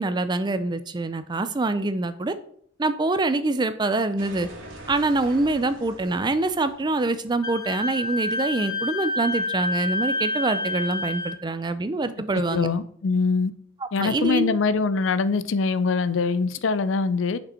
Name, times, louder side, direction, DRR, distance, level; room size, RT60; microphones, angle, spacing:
voice 1, 0.0-2.3 2.8-4.5 4.9-12.7 14.0-14.6, right 2 dB, 20° right, 11 dB, 0.4 m, -25 dB
sound 1, 4.2-8.9, right 1 dB, 75° right, 2.0 m, -45 dB
Wind instrument woodwind instrument, 7.4-11.4, left 2 dB, 20° left, 0.7 m, -28 dB
voice 2, 12.5-13.5 13.9-17.4, left 4 dB, 70° left, 14 dB, 0.5 m, -23 dB
7.1 x 5.3 x 4.3 m, 0.62 s
head